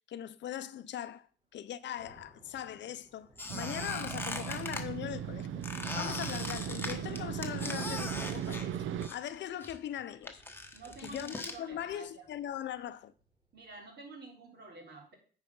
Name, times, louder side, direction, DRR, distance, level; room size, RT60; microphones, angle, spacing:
voice 1, 0.1-1.3 1.5-5.6 5.9-10.4 10.9-13.1, left 10 dB, 65° left, 0.6 m, -40 dB
Thunder / Rain, 1.4-13.8, right 1 dB, 20° right, 5.1 m, -62 dB
Squeak, 3.4-4.8 5.6-9.3 9.6-11.6, left 2 dB, 10° left, 1.3 m, -40 dB
Motorcycle, 3.5-9.1, right 9 dB, 80° right, 0.7 m, -38 dB
voice 2, 10.7-12.2 13.5-15.1, right 4 dB, 60° right, 3.6 m, -49 dB
9.2 x 4.9 x 5.5 m
cardioid pair, 90°, 20 cm